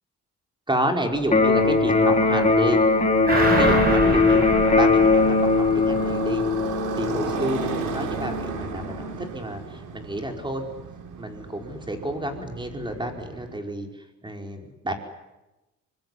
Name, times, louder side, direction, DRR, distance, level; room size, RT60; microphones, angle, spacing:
voice 1, 0.7-2.8 3.4-6.5 7.0-10.7 11.2-14.9, right 1 dB, 15° right, 4 dB, 5.1 m, -30 dB
Electric guitar, 1.3-9.2, left 3 dB, 25° left, 4.0 m, -21 dB
Motorcycle, 2.1-13.6, right 6 dB, 85° right, 3.9 m, -36 dB
sound 1, 3.3-6.2 6.5-6.6, right 2 dB, 30° right, 7.2 m, -27 dB
25.0 x 22.0 x 9.9 m, 1.0 s
cardioid pair, 90°, 30 cm